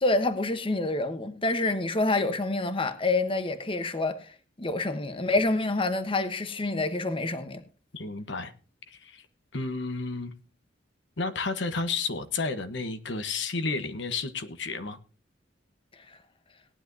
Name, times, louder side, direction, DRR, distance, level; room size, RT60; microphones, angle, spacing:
voice 1, 0.0-4.3 4.6-7.6, left 2 dB, 30° left, 1.0 m, -27 dB
voice 2, 7.9-8.5 8.9-9.2 9.5-10.3 11.2-15.0, left 3 dB, 65° left, 1.1 m, -31 dB
18.5 x 10.0 x 2.7 m
head